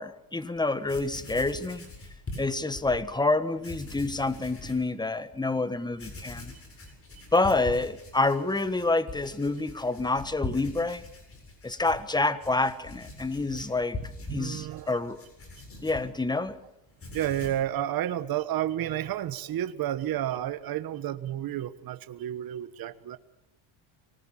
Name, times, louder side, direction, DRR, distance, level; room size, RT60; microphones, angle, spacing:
voice 1, 0.0-1.8 2.4-6.5 7.3-11.0 11.6-14.0 14.3-15.2 15.8-16.6, left 2 dB, 10° left, 1.4 m, -28 dB
Writing, 0.6-0.7 0.8-3.0 3.6-4.9 5.3-5.4 5.9-16.6 16.9-17.7, left 2 dB, 25° left, 7.8 m, -42 dB
voice 2, 14.3-15.0 17.1-23.2, right 12 dB, 45° right, 1.3 m, -31 dB
24.5 x 19.5 x 7.3 m
cardioid pair, 115°, 49 cm